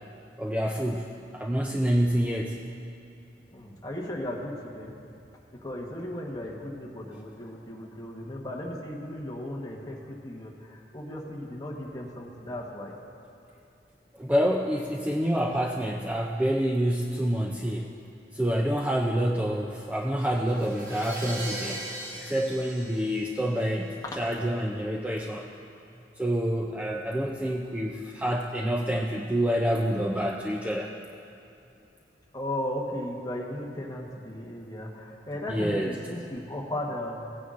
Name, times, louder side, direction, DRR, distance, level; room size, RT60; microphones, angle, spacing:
voice 1, 0.4-1.1 1.3-2.6 14.2-17.9 18.3-21.8 22.2-25.4 26.2-30.9 35.5-35.9, equal, 10° right, 0 dB, 0.4 m, -27 dB
voice 2, 3.5-4.9 5.6-13.0 24.0-24.1 32.3-37.2, left 1 dB, 20° left, -1 dB, 1.1 m, -36 dB
Crash cymbal, 20.5-24.2, right 1 dB, 75° right, 2.3 m, -39 dB
17.0 x 9.5 x 2.5 m, 2.6 s
head